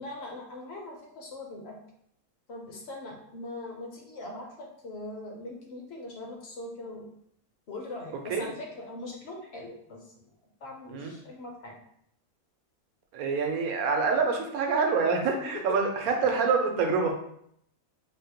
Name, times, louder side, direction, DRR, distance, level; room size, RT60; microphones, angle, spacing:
voice 1, 0.0-1.8 2.5-7.1 7.7-10.2 10.6-11.8 15.7-15.8, left 2 dB, 60° left, 0 dB, 0.8 m, -41 dB
voice 2, 13.1-17.1, right 4 dB, 85° right, 3 dB, 1.1 m, -26 dB
3.9 x 2.1 x 2.8 m, 0.71 s
omnidirectional pair, 1.5 m